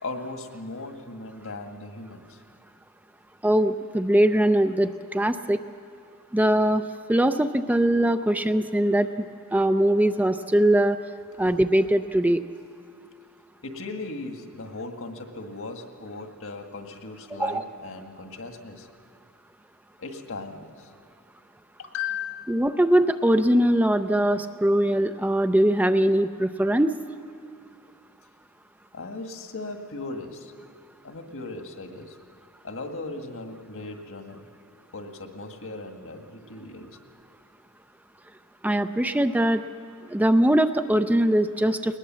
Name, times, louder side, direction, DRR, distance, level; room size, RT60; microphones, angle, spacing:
voice 1, 0.0-2.4 13.6-18.9 20.0-20.9 21.8-22.6 28.9-30.5 31.0-32.2 32.6-34.4 34.9-37.0, left 3 dB, 65° left, 5 dB, 1.8 m, -37 dB
voice 2, 3.4-5.6 6.3-11.0 11.4-12.4 17.4-17.6 22.5-26.9 38.6-39.6 40.1-42.0, right 1 dB, 5° right, 9 dB, 0.4 m, -21 dB
20.0 x 20.0 x 7.5 m, 2.4 s
head